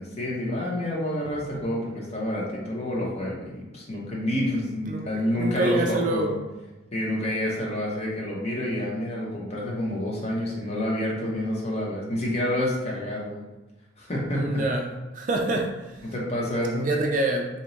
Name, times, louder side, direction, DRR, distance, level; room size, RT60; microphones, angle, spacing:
voice 1, 0.0-6.4 6.9-13.4 14.0-14.6 16.0-16.9, left 1 dB, 30° left, -3 dB, 0.8 m, -28 dB
voice 2, 4.9-6.3 14.3-14.9 15.1-16.1 16.8-17.5, right 2 dB, 40° right, 2 dB, 0.3 m, -26 dB
2.9 x 2.2 x 3.9 m, 1.1 s
head